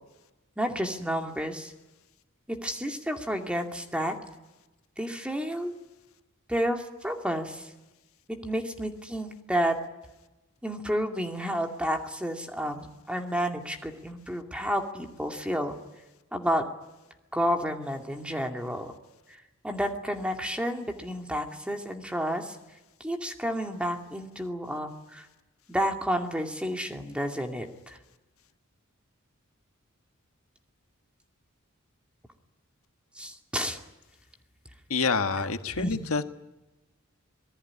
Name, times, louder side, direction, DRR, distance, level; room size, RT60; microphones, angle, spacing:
voice 1, 0.6-1.7 2.5-4.2 5.0-5.7 6.5-7.7 8.3-9.8 10.6-15.7 16.3-16.6 17.3-18.9 19.3-22.6 23.0-25.3 25.7-28.0 33.2-33.8 35.8-36.0, equal, 5° right, 3 dB, 2.3 m, -31 dB
voice 2, 34.9-36.2, left 4 dB, 80° left, 8 dB, 1.5 m, -27 dB
26.5 x 19.5 x 9.8 m, 1.0 s
head